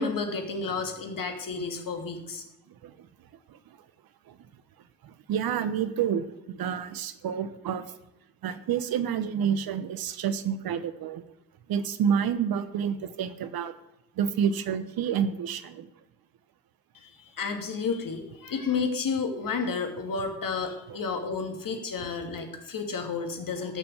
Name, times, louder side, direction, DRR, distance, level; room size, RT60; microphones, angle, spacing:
voice 1, 0.0-2.4 16.9-17.1 17.4-23.8, left 4 dB, 55° left, 4 dB, 2.8 m, -31 dB
voice 2, 5.0-7.9 8.4-11.2 11.7-13.7 14.2-15.9, right 8 dB, 65° right, 12 dB, 1.1 m, -29 dB
14.5 x 7.0 x 8.1 m, 0.86 s
hypercardioid pair, 45°, 39 cm